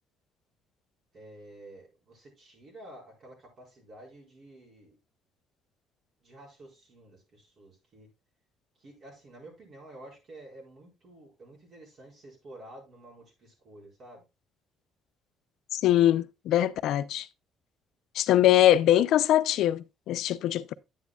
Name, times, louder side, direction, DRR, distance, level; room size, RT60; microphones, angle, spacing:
voice 1, 1.1-5.0 6.2-8.1 8.8-14.2, right 1 dB, 45° right, 4.7 m, -50 dB
voice 2, 15.7-17.3 18.2-20.7, left 12 dB, 70° left, 0.5 m, -23 dB
9.7 x 9.4 x 2.3 m
cardioid pair, 135°, 0 cm